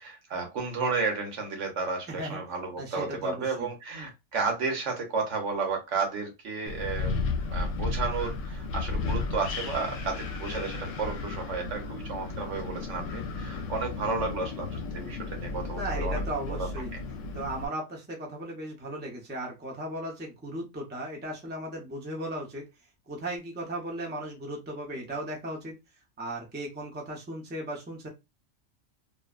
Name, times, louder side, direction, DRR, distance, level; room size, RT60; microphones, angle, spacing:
voice 1, 0.0-7.1 7.5-16.2 16.5-16.7, right 4 dB, 65° right, 2 dB, 1.1 m, -32 dB
voice 2, 2.1-2.4 2.8-3.7 15.7-16.9 17.3-22.6 23.1-25.7 26.2-28.1, right 1 dB, 10° right, 0 dB, 0.5 m, -36 dB
Wind, 6.7-17.7, left 3 dB, 75° left, 0.9 m, -33 dB
2.7 x 2.2 x 2.3 m, 0.23 s
omnidirectional pair, 1.4 m